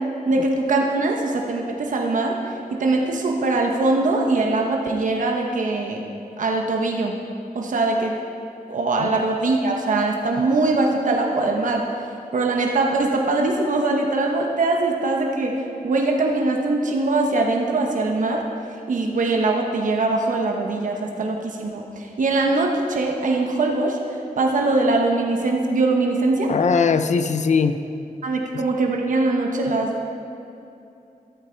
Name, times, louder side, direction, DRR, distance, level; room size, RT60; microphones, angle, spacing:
voice 1, 0.3-6.0 6.4-7.2 7.5-8.2 8.7-11.8 12.3-18.4 18.9-26.5 28.2-30.1, right 2 dB, 65° right, 1 dB, 1.1 m, -22 dB
voice 2, 26.5-27.8 28.5-28.6, left 5 dB, 55° left, 10 dB, 0.6 m, -20 dB
14.0 x 13.0 x 4.5 m, 2.8 s
wide cardioid pair, 175°, 15 cm